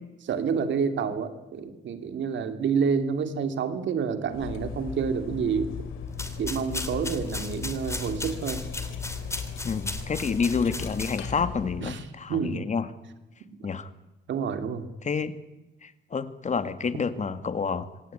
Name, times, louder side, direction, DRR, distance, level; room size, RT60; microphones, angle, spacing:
voice 1, 0.2-5.7 6.4-8.6 11.8-12.7 14.3-14.9, right 6 dB, 70° right, 9 dB, 2.7 m, -28 dB
Cutlery silverware, 4.3-12.0, left 6 dB, 85° left, 3.1 m, -37 dB
sound 1, 6.1-11.4, left 2 dB, 15° left, 2.9 m, -37 dB
voice 2, 9.6-12.9 13.6-13.9 15.0-15.4 15.8-17.9, left 5 dB, 35° left, 12 dB, 1.9 m, -29 dB
25.5 x 17.5 x 8.7 m, 1.0 s
cardioid pair, 90°, 20 cm